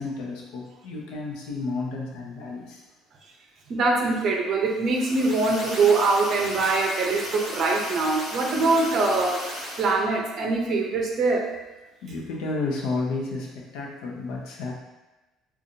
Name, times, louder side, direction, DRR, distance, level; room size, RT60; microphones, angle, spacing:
voice 1, 0.0-2.8 12.0-14.7, left 3 dB, 80° left, -1 dB, 0.8 m, -31 dB
voice 2, 3.7-9.5 9.8-11.5, right 3 dB, 35° right, 0 dB, 0.6 m, -23 dB
sound 1, 4.9-10.0, equal, 10° left, 0.8 m, -35 dB
5.1 x 2.4 x 2.7 m, 1.1 s
cardioid pair, 175°, 0 cm